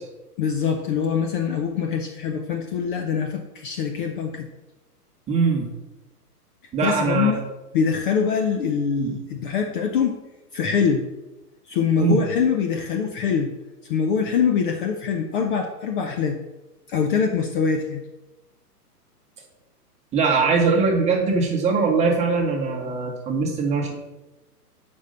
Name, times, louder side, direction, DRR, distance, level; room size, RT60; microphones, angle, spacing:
voice 1, 0.4-4.5 6.8-7.4 7.7-10.2 10.5-11.1 11.7-13.5 13.9-16.4 16.9-18.0, left 6 dB, 35° left, 4 dB, 0.6 m, -23 dB
voice 2, 5.3-5.7 6.7-7.3 9.0-9.1 12.0-12.2 20.1-24.0, right 4 dB, 15° right, 0 dB, 1.2 m, -21 dB
8.0 x 5.3 x 5.4 m, 1.0 s
hypercardioid pair, 140°, 47 cm